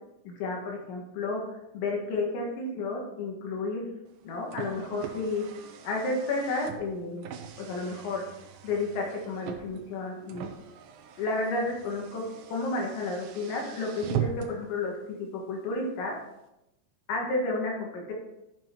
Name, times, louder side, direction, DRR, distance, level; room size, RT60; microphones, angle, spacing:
voice 1, 0.2-1.4 1.7-3.9 4.2-5.5 5.8-7.3 7.6-8.2 8.6-10.5 11.2-12.3 12.5-14.9 15.3-16.2 17.1-18.1, left 3 dB, 90° left, 0 dB, 4.1 m, -31 dB
Car, 4.1-14.7, right 8 dB, 80° right, 3.0 m, -40 dB
13.5 x 7.3 x 3.0 m, 0.89 s
omnidirectional pair, 5.1 m